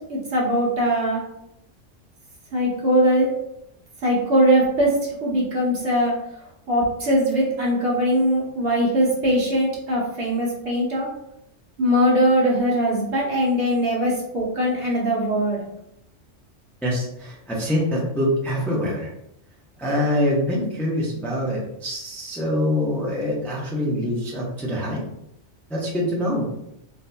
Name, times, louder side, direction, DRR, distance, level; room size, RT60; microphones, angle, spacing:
voice 1, 0.1-1.2 2.5-3.3 4.0-4.9 5.2-6.1 6.7-11.1 11.8-15.6, equal, 50° right, -4 dB, 1.1 m, -21 dB
voice 2, 16.8-19.1 19.8-25.0 25.7-26.5, left 1 dB, ahead, -5 dB, 0.4 m, -24 dB
3.8 x 2.6 x 2.2 m, 0.79 s
omnidirectional pair, 1.3 m